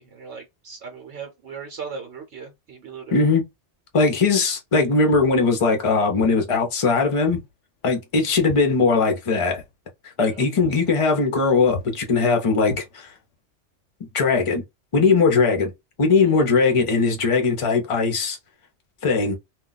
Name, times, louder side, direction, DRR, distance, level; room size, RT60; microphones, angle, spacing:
voice 1, 0.0-3.3 10.2-10.4 16.2-16.4, right 5 dB, 70° right, 1.0 m, -38 dB
voice 2, 3.1-3.4 3.9-7.4 7.8-9.6 10.2-13.1 14.1-14.6 14.9-15.7 16.0-18.4 19.0-19.4, left 4 dB, 35° left, 0.6 m, -19 dB
Walk footsteps, 5.1-5.4 6.2-6.4 7.3-7.5 7.8-9.3 9.5-9.7 10.2-10.3 10.6-10.8 11.1-11.4 11.7-11.9 12.6-13.3, left 4 dB, 80° left, 0.9 m, -37 dB
2.3 x 2.3 x 3.9 m
omnidirectional pair, 1.2 m